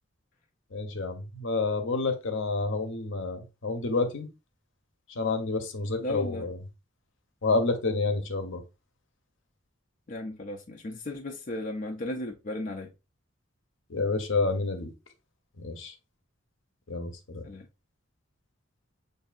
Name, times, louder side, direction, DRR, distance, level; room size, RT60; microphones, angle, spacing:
voice 1, 0.7-4.3 5.1-6.6 7.4-8.6 13.9-14.9 15.6-15.9 16.9-17.4, left 3 dB, 70° left, 0.8 m, -29 dB
voice 2, 6.0-6.5 10.1-12.9 17.4-17.7, left 1 dB, 45° left, 0.5 m, -35 dB
6.5 x 2.6 x 2.4 m
head